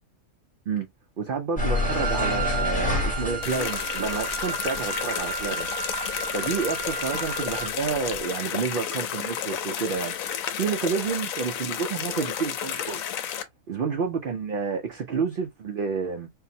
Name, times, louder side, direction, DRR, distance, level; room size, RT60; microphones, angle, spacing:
voice 1, 1.2-5.7 6.3-10.1 10.6-13.0 13.7-16.3, right 5 dB, 85° right, 0.4 m, -29 dB
sound 1, 1.6-6.2 6.6-8.2, left 2 dB, 10° left, 0.6 m, -29 dB
Wind instrument woodwind instrument, 1.7-7.8, right 6 dB, 65° right, 0.8 m, -34 dB
sound 2, 3.4-13.4, left 9 dB, 75° left, 1.0 m, -31 dB
3.7 x 2.0 x 2.7 m
omnidirectional pair, 1.5 m